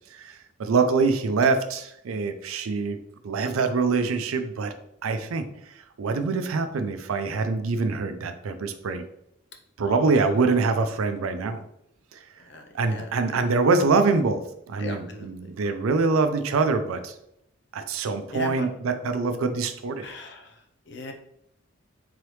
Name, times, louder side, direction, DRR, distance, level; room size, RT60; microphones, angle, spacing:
voice 1, 0.1-3.0 3.2-4.7 5.0-9.0 9.8-11.6 12.1-12.3 12.7-14.4 14.7-17.2 17.7-20.1, right 4 dB, 85° right, 8 dB, 0.4 m, -24 dB
voice 2, 12.5-13.4 14.8-15.8 18.3-18.7 20.0-21.1, left 2 dB, 55° left, 3 dB, 0.6 m, -39 dB
3.8 x 3.1 x 3.1 m, 0.76 s
head